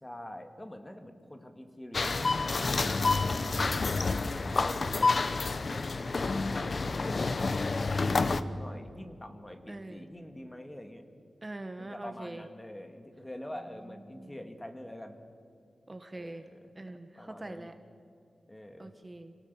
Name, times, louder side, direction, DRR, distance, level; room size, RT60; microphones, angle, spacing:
voice 1, 0.0-3.9 4.5-11.1 11.8-15.2 16.1-16.7 17.2-17.7 18.5-18.9, left 1 dB, 15° left, 7 dB, 2.1 m, -46 dB
sound 1, 1.9-8.4, left 3 dB, 50° left, 0.9 m, -29 dB
voice 2, 6.9-7.5 9.7-10.1 11.4-12.5 14.1-14.4 15.9-16.5 16.7-17.7 18.8-19.4, right 2 dB, 25° right, 8 dB, 1.2 m, -44 dB
27.0 x 18.5 x 7.0 m, 2.4 s
wide cardioid pair, 85°, 0 cm